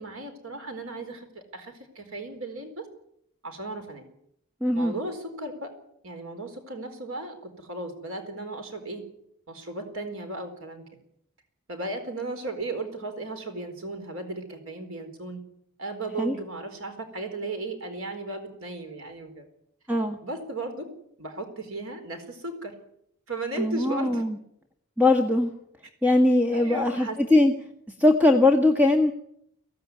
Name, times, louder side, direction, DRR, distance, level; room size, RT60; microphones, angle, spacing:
voice 1, 0.0-2.9 3.4-4.1 4.7-5.7 6.0-9.1 9.5-10.8 11.7-15.4 15.8-19.5 20.2-20.8 21.2-22.8 23.3-24.2 26.5-27.2, right 2 dB, 75° right, 5 dB, 4.3 m, -35 dB
voice 2, 4.6-4.9 16.2-16.3 19.9-20.2 23.6-24.4 25.0-25.6 26.0-27.5 28.0-29.1, left 2 dB, 10° right, 4 dB, 1.6 m, -21 dB
23.5 x 17.0 x 9.7 m, 0.75 s
head